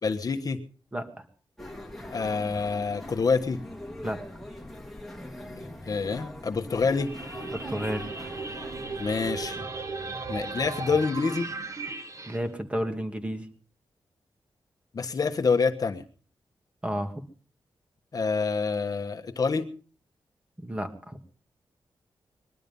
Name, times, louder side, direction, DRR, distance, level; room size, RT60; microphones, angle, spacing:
voice 1, 0.0-0.6 2.1-3.6 5.5-7.1 9.0-9.7 10.3-11.5 14.9-16.0 18.1-19.7, left 4 dB, 45° left, 5 dB, 1.4 m, -27 dB
voice 2, 0.9-1.2 4.0-4.2 7.5-8.1 12.3-13.5 16.8-17.2 20.6-21.2, equal, 15° right, 5 dB, 2.3 m, -32 dB
sound 1, 1.6-9.5, left 1 dB, ahead, 2.5 m, -42 dB
sound 2, 6.9-12.4, right 3 dB, 35° right, 1.5 m, -36 dB
22.0 x 12.0 x 5.4 m, 0.42 s
wide cardioid pair, 155°, 9 cm